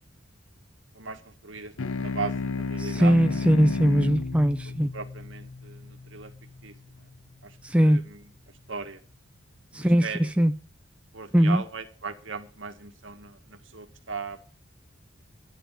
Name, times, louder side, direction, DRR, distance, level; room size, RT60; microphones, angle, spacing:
voice 1, 0.9-3.4 4.7-6.3 6.6-7.1 7.4-7.6 7.8-8.3 8.7-9.0 9.7-10.3 11.1-14.4, right 5 dB, 75° right, 2.0 m, -38 dB
sound 1, 1.8-6.6, left 4 dB, 90° left, 0.6 m, -33 dB
voice 2, 2.8-4.9 7.6-8.0 9.7-10.5 11.3-11.6, equal, 5° right, 0.6 m, -21 dB
12.5 x 11.0 x 5.9 m
head